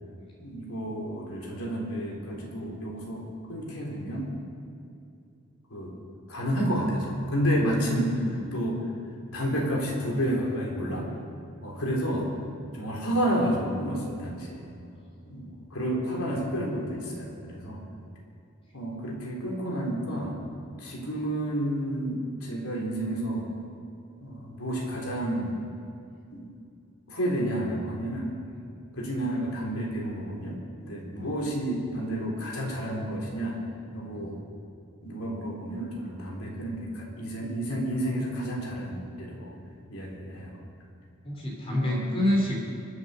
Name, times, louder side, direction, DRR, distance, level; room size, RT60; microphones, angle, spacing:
voice 1, 0.4-4.4 5.7-5.9 6.3-8.8 9.3-11.1 11.6-12.3 12.7-14.7 15.3-17.8 18.7-20.4 20.8-23.5 24.2-25.6 26.3-26.4 27.1-28.3 28.9-33.6 33.9-34.4 35.0-39.6 39.9-40.6 41.8-42.1, equal, 90° left, -2 dB, 3.7 m, -30 dB
voice 2, 41.2-42.6, left 1 dB, 25° left, -3 dB, 3.2 m, -27 dB
24.5 x 8.4 x 6.7 m, 2.5 s
head